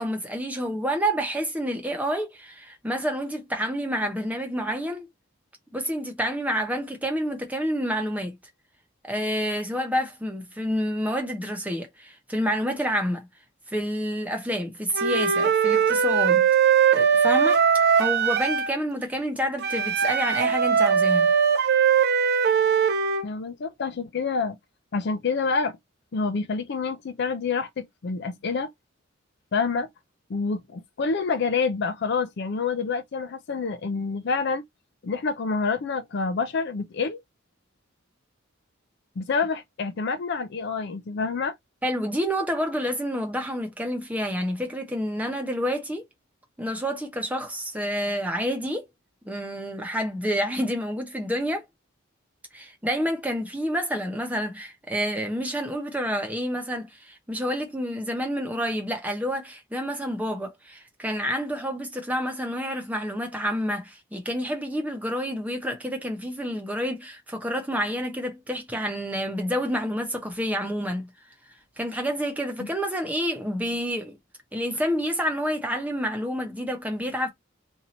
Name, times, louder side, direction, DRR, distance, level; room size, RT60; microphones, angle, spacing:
voice 1, 0.0-5.1 5.7-8.4 9.0-13.3 13.7-16.5 16.9-17.6 18.0-21.3 41.8-46.0 46.6-48.9 49.3-51.6 52.5-71.1 71.8-74.2 74.5-77.3, equal, 5° right, 0.9 m, -28 dB
Wind instrument woodwind instrument, 14.9-18.8 19.6-23.3, right 7 dB, 50° right, 0.4 m, -20 dB
voice 2, 23.2-24.5 24.9-25.8 26.1-28.7 29.5-29.9 30.3-34.6 35.0-37.2 39.2-41.5 72.6-72.7, left 4 dB, 55° left, 0.4 m, -27 dB
2.9 x 2.6 x 4.0 m
head